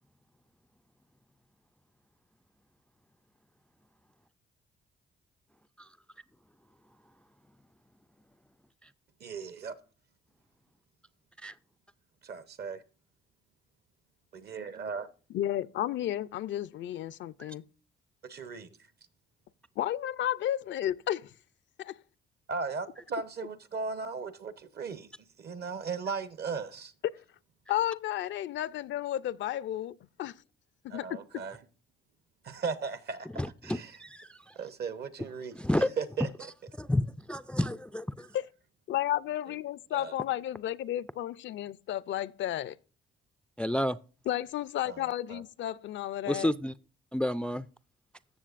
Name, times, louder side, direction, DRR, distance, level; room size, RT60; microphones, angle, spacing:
voice 1, 9.2-9.8 12.2-12.8 14.3-15.1 18.2-18.7 22.5-25.1 25.4-26.9 30.9-31.6 32.4-33.3 33.6-33.9 34.6-35.6 36.0-36.5 39.9-40.1 44.8-45.4, right 5 dB, 55° right, 1.0 m, -37 dB
voice 2, 15.3-17.6 19.8-21.3 21.8-21.9 27.7-29.9 30.2-30.3 30.8-31.4 38.3-38.5 38.9-42.8 44.3-46.5, left 12 dB, 70° left, 0.5 m, -32 dB
voice 3, 33.3-34.6 35.5-35.9 36.7-38.3 43.6-44.0 46.3-46.7 47.1-47.7, left 1 dB, 5° left, 0.3 m, -30 dB
15.0 x 6.6 x 2.5 m
cardioid pair, 90°, 20 cm